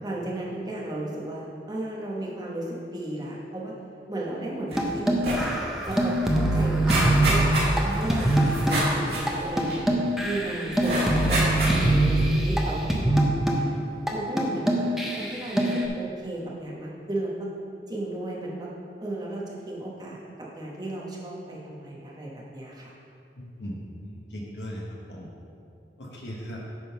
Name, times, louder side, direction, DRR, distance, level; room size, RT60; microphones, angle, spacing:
voice 1, 0.0-3.7 4.1-5.5 5.8-7.4 7.8-9.8 10.2-13.7 14.1-17.3 17.9-18.7 19.0-20.2 20.5-22.9, right 1 dB, 20° right, -4 dB, 1.1 m, -34 dB
sound 1, 4.7-4.9 5.2-5.5 5.9-6.0 6.3-10.2 10.8-12.0 12.5-12.6, right 1 dB, 60° right, 1.9 m, -29 dB
sound 2, 4.8-8.9 9.3-9.4 9.6-12.6 12.9-13.6 14.1-14.2 14.4-15.8, right 1 dB, ahead, 0.6 m, -23 dB
voice 2, 23.4-24.8 25.1-25.3 26.0-26.6, equal, 80° left, -3 dB, 1.1 m, -38 dB
9.2 x 3.8 x 5.7 m, 2.6 s
head